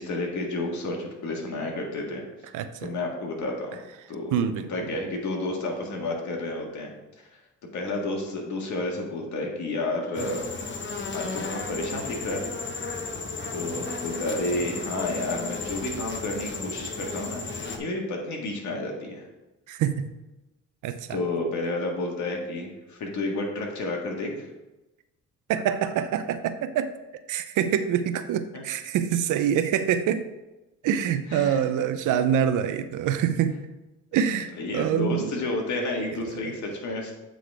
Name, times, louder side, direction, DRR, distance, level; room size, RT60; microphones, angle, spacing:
voice 1, 0.0-2.2 2.8-3.8 4.1-4.4 4.7-6.9 7.7-10.5 11.1-12.6 13.5-19.2 21.1-24.5 28.5-28.6 31.3-31.6 34.6-37.1, left 2 dB, 70° left, 0 dB, 1.8 m, -31 dB
voice 2, 2.5-2.9 4.3-4.7 19.7-20.1 20.8-21.2 25.5-26.9 27.3-30.2 30.8-33.6 34.1-35.3, right 9 dB, 85° right, 11 dB, 0.6 m, -25 dB
sound 1, 10.1-17.8, left 3 dB, 40° left, 1.0 m, -34 dB
8.2 x 3.9 x 4.7 m, 1.0 s
cardioid pair, 90°, 30 cm